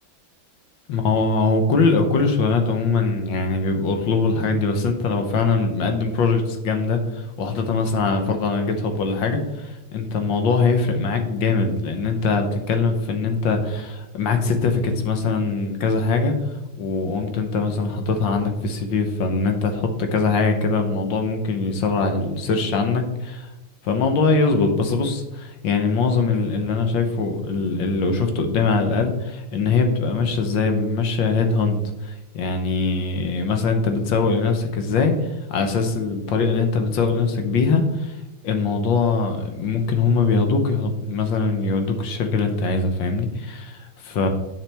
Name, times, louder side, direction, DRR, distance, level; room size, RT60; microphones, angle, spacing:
voice 1, 0.9-16.3 16.8-23.5 23.8-38.2 38.4-44.3, left 4 dB, 70° left, 5 dB, 1.6 m, -22 dB
9.8 x 6.1 x 3.4 m, 0.99 s
omnidirectional pair, 2.3 m